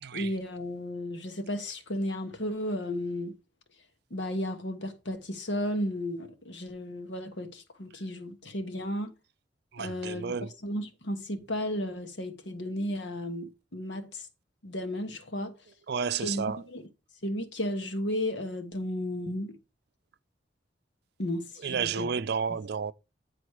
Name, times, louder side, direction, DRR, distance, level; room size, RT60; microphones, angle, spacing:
voice 1, 0.1-3.3 4.1-9.1 9.8-10.3 10.6-14.3 14.6-15.5 16.2-16.9 17.2-19.6 21.2-22.1, left 1 dB, 90° left, 1.4 m, -34 dB
voice 2, 9.7-10.5 15.9-16.6 21.6-22.9, right 6 dB, 65° right, 0.5 m, -31 dB
9.4 x 4.1 x 4.8 m
head